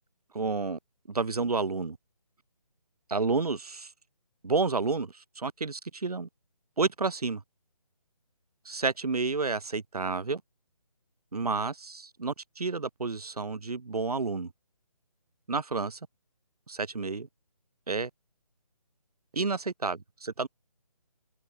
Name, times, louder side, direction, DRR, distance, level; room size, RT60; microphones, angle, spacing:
voice 1, 0.3-0.8 1.1-2.0 3.1-3.9 4.4-6.3 6.8-7.4 8.7-10.4 11.3-14.5 15.5-16.0 16.7-17.3 17.9-18.1 19.3-20.5, right 4 dB, 70° right, 3.4 m, -30 dB
open air
figure-of-eight pair, 170°, 20 cm